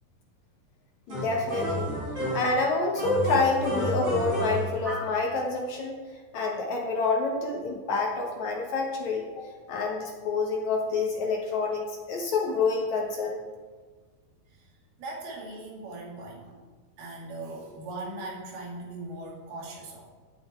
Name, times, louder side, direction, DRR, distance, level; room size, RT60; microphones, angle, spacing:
voice 1, 1.1-1.9 2.3-6.0 6.3-13.4, left 3 dB, 70° left, 0 dB, 1.7 m, -28 dB
sound 1, 1.1-2.6 3.0-5.2, equal, 25° right, 4.3 m, -31 dB
voice 2, 15.0-16.6 17.0-20.1, right 2 dB, 65° right, -2 dB, 4.1 m, -39 dB
16.5 x 8.1 x 4.4 m, 1.4 s
omnidirectional pair, 4.9 m